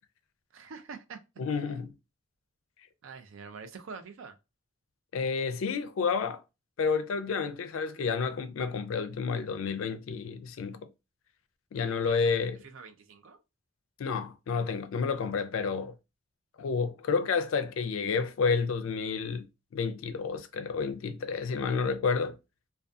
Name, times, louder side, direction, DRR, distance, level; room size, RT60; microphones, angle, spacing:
voice 1, 0.5-1.2 1.5-1.7 3.0-4.3 12.0-12.3 12.6-13.4, right 5 dB, 80° right, 0.4 m, -45 dB
voice 2, 1.4-1.9 5.1-6.4 6.8-10.8 11.7-12.6 14.0-15.9 16.6-19.5 19.7-22.4, left 5 dB, 85° left, 0.4 m, -30 dB
2.3 x 2.2 x 2.5 m
head